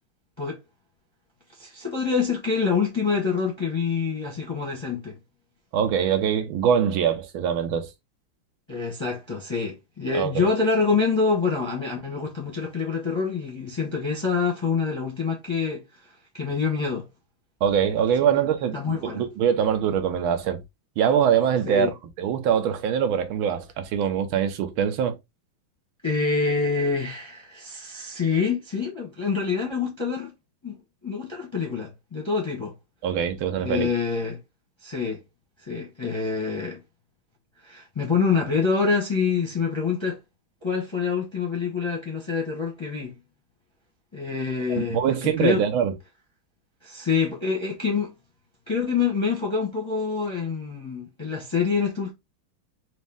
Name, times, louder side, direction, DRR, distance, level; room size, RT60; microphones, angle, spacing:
voice 1, 1.6-5.2 8.7-15.8 16.3-17.1 18.3-18.4 18.7-19.2 21.7-21.9 26.0-30.3 30.6-30.8 31.0-32.7 33.6-34.4 34.8-35.2 35.6-36.8 37.6-40.2 40.6-43.1 44.1-45.6 46.8-48.1 48.7-52.1, left 5 dB, 20° left, 0.7 m, -26 dB
voice 2, 5.7-7.9 10.1-10.5 17.6-18.8 19.0-20.6 21.0-21.9 22.2-25.2 33.0-33.9 44.8-45.9, right 8 dB, 80° right, 1.6 m, -23 dB
4.2 x 2.6 x 3.5 m
omnidirectional pair, 2.3 m